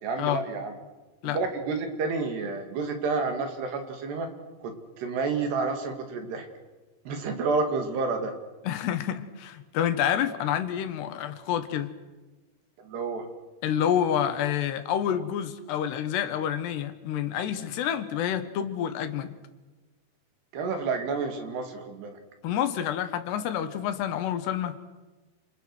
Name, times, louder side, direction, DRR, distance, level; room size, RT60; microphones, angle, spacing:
voice 1, 0.0-0.7 1.2-4.3 4.6-6.5 7.1-8.3 12.8-13.3 20.5-22.2, right 4 dB, 70° right, 5 dB, 4.6 m, -30 dB
voice 2, 8.6-11.9 13.6-19.4 22.4-24.8, left 9 dB, 75° left, 10 dB, 3.3 m, -28 dB
29.0 x 28.0 x 6.3 m, 1.2 s
omnidirectional pair, 5.0 m